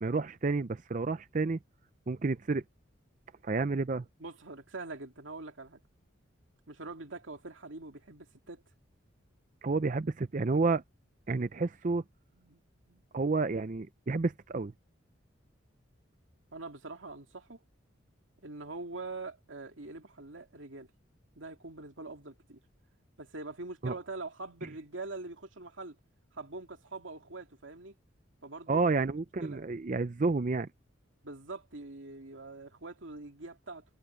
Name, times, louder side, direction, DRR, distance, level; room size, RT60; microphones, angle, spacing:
voice 1, 0.0-1.6 2.1-2.6 3.4-4.0 9.6-10.8 11.3-12.0 13.1-14.7 23.8-23.9 28.7-30.7, right 3 dB, 40° right, 0.5 m, -30 dB
voice 2, 4.2-5.8 6.7-8.6 12.3-12.6 12.9-13.0 16.5-17.6 18.4-20.9 21.4-22.6 23.2-26.0 26.3-27.9 28.4-28.9 29.2-29.6 31.2-33.8, right 3 dB, 80° right, 2.5 m, -44 dB
head